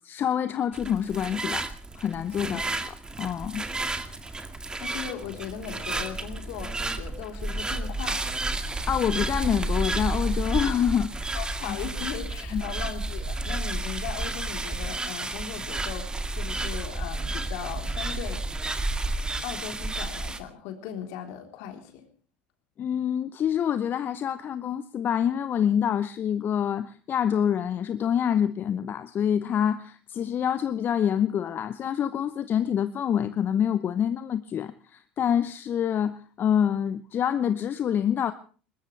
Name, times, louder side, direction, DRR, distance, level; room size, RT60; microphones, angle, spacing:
voice 1, 0.0-1.7 1.9-2.6 3.2-3.6 8.9-11.1 12.5-12.6 22.8-38.3, left 9 dB, 40° left, 11 dB, 0.9 m, -26 dB
sound 1, 0.7-20.4, right 2 dB, 15° right, 2.0 m, -31 dB
voice 2, 4.8-8.3 11.3-18.4 19.4-22.0, left 9 dB, 65° left, 4 dB, 3.9 m, -38 dB
21.5 x 20.0 x 3.4 m, 0.40 s
hypercardioid pair, 75°, 5 cm